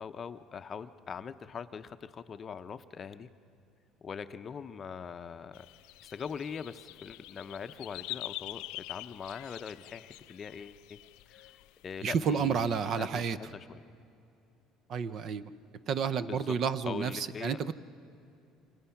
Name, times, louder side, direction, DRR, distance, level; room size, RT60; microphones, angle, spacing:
voice 1, 0.0-3.3 4.0-5.7 6.0-11.0 11.3-11.5 11.8-13.8 16.3-16.5 16.8-17.6, left 6 dB, 30° left, 10 dB, 0.7 m, -42 dB
sound 1, 5.5-13.0, left 19 dB, 85° left, 0.5 m, -46 dB
voice 2, 12.0-13.4 14.9-15.5 15.9-17.7, right 6 dB, 45° right, 15 dB, 0.7 m, -30 dB
28.0 x 25.5 x 5.8 m, 2.6 s
cardioid pair, 140°, 0 cm